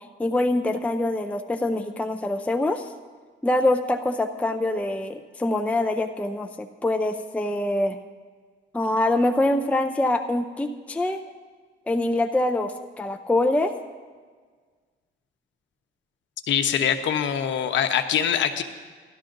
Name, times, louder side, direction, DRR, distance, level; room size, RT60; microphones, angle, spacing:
voice 1, 0.2-2.8 3.4-8.0 8.7-11.2 11.9-12.7 13.0-13.7, left 1 dB, 5° left, 6 dB, 0.5 m, -24 dB
voice 2, 16.5-18.6, left 8 dB, 70° left, 8 dB, 0.9 m, -23 dB
17.5 x 12.0 x 2.6 m, 1.5 s
cardioid pair, 90°, 20 cm